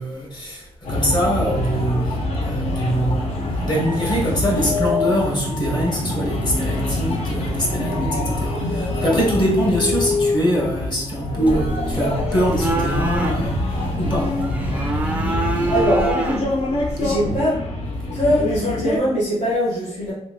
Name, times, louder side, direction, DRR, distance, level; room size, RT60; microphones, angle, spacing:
voice 1, 0.0-14.4, equal, 40° left, -3 dB, 1.2 m, -23 dB
sound 1, 0.8-19.0, left 2 dB, 55° left, 0.7 m, -25 dB
sound 2, 11.4-17.4, right 2 dB, 10° right, 0.4 m, -27 dB
voice 2, 15.7-16.1 17.0-17.5 18.1-20.1, equal, 80° left, -9 dB, 1.4 m, -21 dB
3.1 x 3.1 x 2.2 m, 0.79 s
cardioid pair, 120°, 12 cm